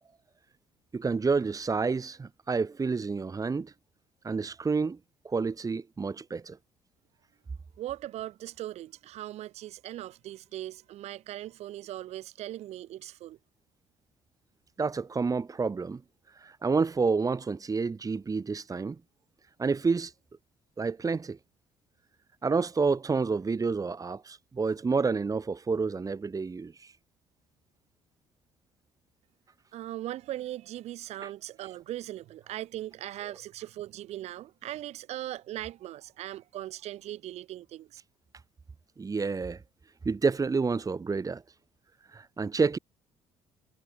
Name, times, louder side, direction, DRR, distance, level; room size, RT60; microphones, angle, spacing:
voice 1, 0.9-3.7 4.2-5.0 5.2-6.6 14.8-16.0 16.3-19.0 19.6-20.1 20.8-21.4 22.4-26.9 31.2-31.3 39.0-39.6 40.0-41.4 42.1-42.8, right 4 dB, 30° right, 2.2 m, -29 dB
voice 2, 7.8-13.4 29.7-38.0, right 14 dB, 65° right, 4.8 m, -39 dB
hypercardioid pair, 55°, 12 cm